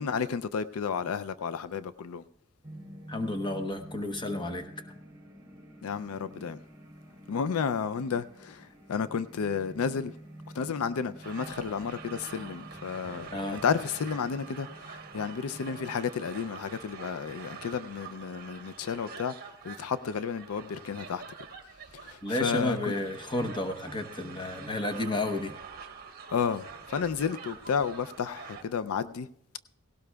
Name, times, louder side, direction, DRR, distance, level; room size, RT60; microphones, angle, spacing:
voice 1, 0.0-2.2 5.8-6.6 7.3-10.1 10.6-21.2 21.9-22.9 26.3-29.3, left 6 dB, 80° left, 0.4 m, -32 dB
sound 1, 2.6-16.0, equal, 15° right, 2.2 m, -48 dB
voice 2, 3.1-4.7 13.3-13.6 22.2-25.5, left 1 dB, 20° left, 0.9 m, -31 dB
sound 2, 11.2-28.6, right 5 dB, 45° right, 1.0 m, -46 dB
17.5 x 17.0 x 2.3 m
head